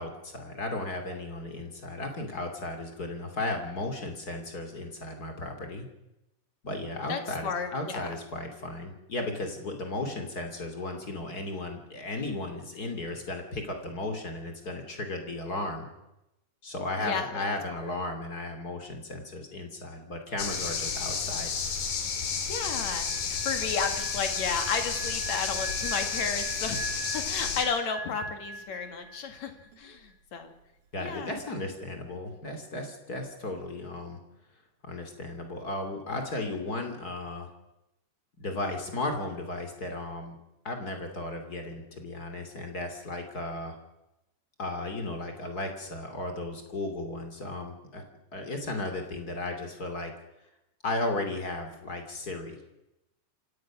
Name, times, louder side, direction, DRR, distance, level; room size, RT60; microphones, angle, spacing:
voice 1, 0.0-5.9 6.6-15.9 16.6-21.5 30.9-34.2 34.8-37.5 38.4-40.4 40.6-43.7 44.6-48.0 48.3-50.1 50.8-52.6, left 2 dB, 30° left, 5 dB, 3.0 m, -35 dB
voice 2, 7.1-8.0 17.0-17.5 17.7-17.8 22.5-29.5 29.8-30.5 31.0-31.4, left 6 dB, 60° left, 7 dB, 3.3 m, -33 dB
sound 1, 20.4-27.6, left 6 dB, 80° left, 4.1 m, -31 dB
sound 2, 23.0-29.4 29.6-29.9, right 2 dB, 50° right, 2.8 m, -41 dB
27.0 x 17.0 x 6.2 m, 0.92 s
omnidirectional pair, 3.7 m